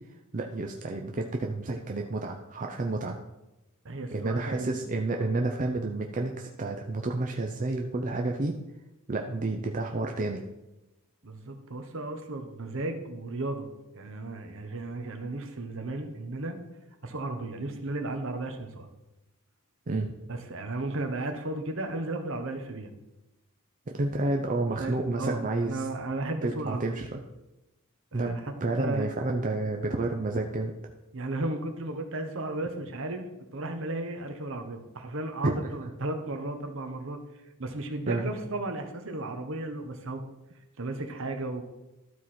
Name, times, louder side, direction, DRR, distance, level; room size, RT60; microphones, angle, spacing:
voice 1, 0.3-3.2 4.1-8.6 9.1-10.4 19.9-20.2 23.9-25.9 26.4-27.2 28.1-30.7 35.4-35.9 38.1-38.3, right 2 dB, 35° right, 2 dB, 0.6 m, -30 dB
voice 2, 3.8-5.3 11.2-13.7 13.9-16.6 17.0-18.9 20.3-22.9 24.8-27.0 28.1-28.4 28.8-29.1 31.1-33.3 33.5-37.2 37.6-40.2 40.8-41.6, right 2 dB, 60° right, 6 dB, 1.1 m, -34 dB
12.5 x 4.7 x 4.3 m, 0.97 s
head